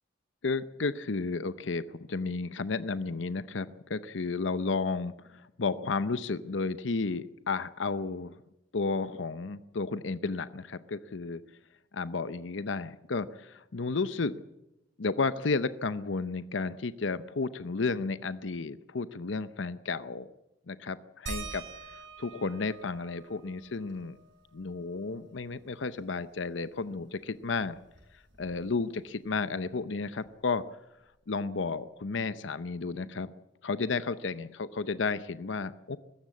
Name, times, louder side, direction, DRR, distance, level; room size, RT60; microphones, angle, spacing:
voice 1, 0.4-8.4 8.7-11.4 11.9-14.3 15.0-20.3 20.7-21.7 22.2-24.2 24.5-27.8 28.4-30.6 31.3-33.3 33.6-36.0, left 4 dB, 75° left, 14 dB, 0.7 m, -32 dB
sound 1, 21.3-26.4 26.7-26.8 27.2-28.9 30.2-30.3 31.0-31.1, right 3 dB, 65° right, 6.7 m, -46 dB
21.0 x 15.5 x 8.4 m, 0.94 s
head